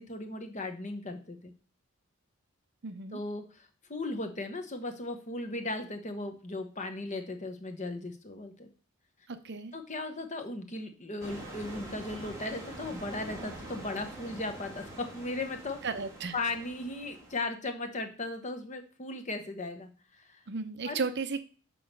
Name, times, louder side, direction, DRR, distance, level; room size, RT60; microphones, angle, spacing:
voice 1, 0.0-1.5 3.1-8.7 9.7-15.8 16.3-19.9 20.2-20.4 20.9-21.0, left 2 dB, 35° left, 6 dB, 1.0 m, -37 dB
voice 2, 2.8-3.2 9.3-9.7 15.8-16.4 20.5-21.4, right 4 dB, 50° right, 10 dB, 0.7 m, -34 dB
sound 1, 11.2-17.4, right 1 dB, 15° right, 2.0 m, -45 dB
6.2 x 4.8 x 6.5 m, 0.38 s
head